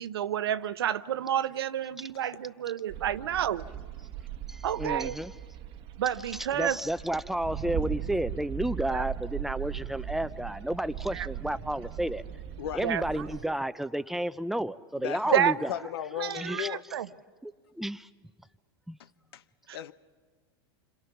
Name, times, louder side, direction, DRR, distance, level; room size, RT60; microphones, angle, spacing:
voice 1, 0.0-3.6 4.6-5.1 6.0-6.8 8.9-9.1 11.1-11.3 12.8-13.2 15.3-15.5 16.2-17.1 19.7-19.9, right 10 dB, 85° right, 14 dB, 0.9 m, -29 dB
sound 1, 2.9-13.4, right 9 dB, 45° right, 1.2 m, -39 dB
voice 2, 4.5-5.3 6.5-12.2 12.7-15.7 16.3-16.7 17.4-18.1 18.9-19.0, right 1 dB, ahead, 14 dB, 0.7 m, -31 dB
voice 3, 12.6-12.9 15.0-16.8 19.0-19.4 19.7-19.9, left 11 dB, 80° left, 15 dB, 0.9 m, -36 dB
29.0 x 26.5 x 6.0 m, 1.5 s
hypercardioid pair, 110°, 13 cm